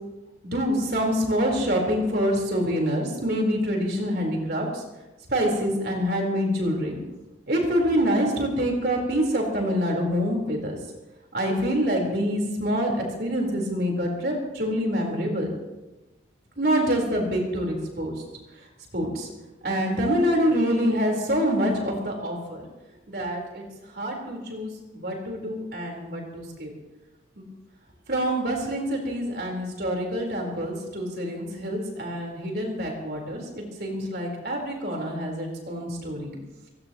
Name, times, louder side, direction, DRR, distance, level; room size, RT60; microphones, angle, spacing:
voice 1, 0.4-4.8 5.3-7.0 7.5-10.8 11.3-15.5 16.6-18.1 18.9-19.3 19.6-22.6 23.1-23.6 23.9-26.7 27.4-27.5 28.1-36.3, equal, 55° right, 0 dB, 4.4 m, -26 dB
25.5 x 16.5 x 3.1 m, 1.0 s
head